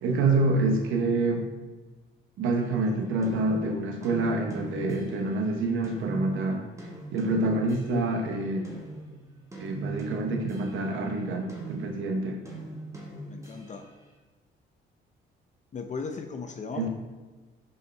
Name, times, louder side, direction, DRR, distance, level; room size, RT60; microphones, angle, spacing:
voice 1, 0.0-1.4 2.4-6.6 7.1-8.6 9.6-12.4 16.7-16.9, right 2 dB, 85° right, 3 dB, 0.9 m, -27 dB
sound 1, 2.6-5.4 5.8-8.2 8.6-13.9, right 3 dB, 15° right, 1.4 m, -41 dB
voice 2, 13.3-13.9 15.7-16.9, left 5 dB, 35° left, 5 dB, 0.6 m, -36 dB
5.3 x 4.9 x 4.4 m, 1.3 s
cardioid pair, 90°, 20 cm